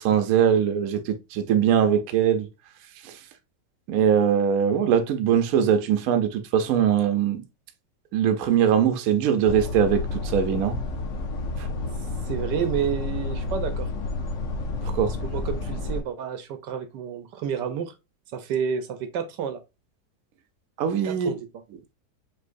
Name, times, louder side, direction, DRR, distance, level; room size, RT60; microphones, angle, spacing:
voice 1, 0.0-2.5 3.0-3.2 3.9-7.4 8.1-10.8 11.6-11.7 14.9-15.1 20.8-21.3, right 8 dB, 65° right, 1.0 m, -21 dB
room tone small trailer in campground tight cramped space, 9.5-16.0, left 2 dB, 55° left, 0.9 m, -30 dB
voice 2, 12.3-13.9 15.2-17.9 18.3-19.6 21.0-21.5, right 7 dB, 80° right, 1.3 m, -30 dB
5.6 x 3.2 x 2.5 m
omnidirectional pair, 1.9 m